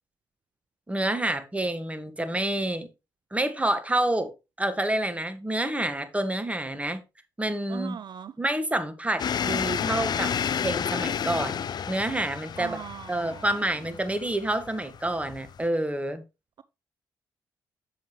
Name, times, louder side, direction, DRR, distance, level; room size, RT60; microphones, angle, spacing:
voice 1, 0.9-2.9 3.3-4.3 4.6-7.0 7.4-8.0 8.4-10.3 10.6-12.8 13.1-16.2, right 1 dB, 15° right, 1.7 m, -28 dB
voice 2, 7.7-8.3 12.6-13.5, right 8 dB, 60° right, 0.4 m, -39 dB
sound 1, 9.2-15.7, left 8 dB, 55° left, 0.5 m, -31 dB
7.2 x 7.2 x 3.1 m
supercardioid pair, 50°, 8 cm